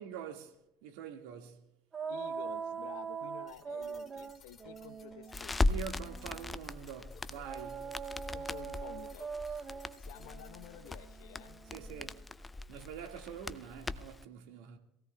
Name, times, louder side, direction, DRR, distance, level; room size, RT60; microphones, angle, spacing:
voice 1, 0.0-1.7 5.6-8.0 9.5-9.6 11.7-12.3 12.7-14.8, right 8 dB, 70° right, 1.9 m, -45 dB
sound 1, 1.9-6.6 7.4-12.1, right 6 dB, 35° right, 1.2 m, -42 dB
voice 2, 2.1-5.8 8.3-9.3 10.0-11.6, left 11 dB, 75° left, 1.0 m, -51 dB
sound 2, 3.5-11.0, left 5 dB, 40° left, 2.2 m, -60 dB
Crackle, 5.3-14.2, left 2 dB, 20° left, 0.7 m, -38 dB
26.0 x 17.0 x 2.3 m
hypercardioid pair, 60°, 0 cm